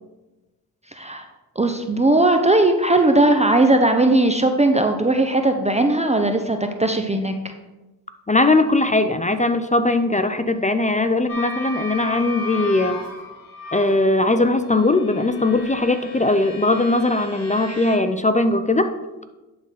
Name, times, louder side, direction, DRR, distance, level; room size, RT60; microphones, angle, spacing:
voice 1, 0.9-1.3 1.6-7.3, right 2 dB, 15° right, 5 dB, 0.7 m, -18 dB
voice 2, 8.3-13.0 13.7-18.9, left 2 dB, 20° left, 9 dB, 0.5 m, -19 dB
sound 1, 11.3-14.0 14.7-18.0, left 3 dB, 60° left, 3.1 m, -35 dB
11.0 x 3.9 x 5.7 m, 1.1 s
cardioid pair, 70°, 40 cm